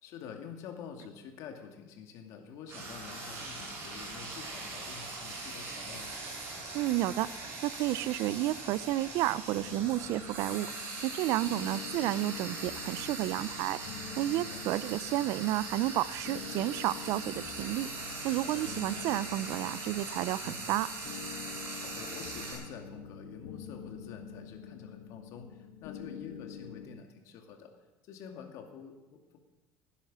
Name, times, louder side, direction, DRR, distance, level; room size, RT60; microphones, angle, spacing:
voice 1, 0.0-6.2 14.3-14.6 18.4-18.7 20.4-20.7 21.8-27.7 28.0-29.4, left 7 dB, 60° left, 4 dB, 2.4 m, -47 dB
Frying (food), 2.7-22.5, right 3 dB, 45° right, 6.2 m, -41 dB
voice 2, 6.7-13.8 14.2-20.9, right 15 dB, 60° right, 19 dB, 0.5 m, -31 dB
sound 1, 9.5-26.9, left 7 dB, 85° left, 1.8 m, -46 dB
17.0 x 10.0 x 6.2 m, 1.1 s
cardioid pair, 140°, 6 cm